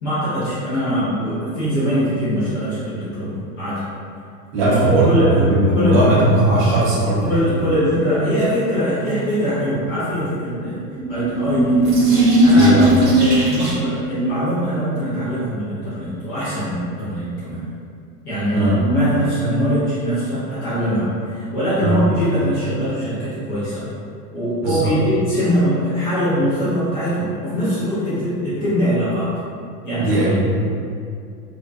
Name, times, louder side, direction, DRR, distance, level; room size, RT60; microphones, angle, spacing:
voice 1, 0.0-3.8 4.6-6.2 6.8-6.9 7.3-10.8 11.1-11.8 12.4-17.6 18.2-23.9 24.3-29.3 29.8-30.3, equal, 15° left, -13 dB, 0.4 m, -22 dB
voice 2, 4.5-7.4 12.5-12.9 18.5-18.8 21.8-22.0 24.6-25.0 29.9-30.6, right 1 dB, 30° right, -8 dB, 0.6 m, -18 dB
sound 1, 10.8-14.0, right 1 dB, 70° right, 0.9 m, -16 dB
2.3 x 2.2 x 2.5 m, 2.4 s
figure-of-eight pair, 100°, 49 cm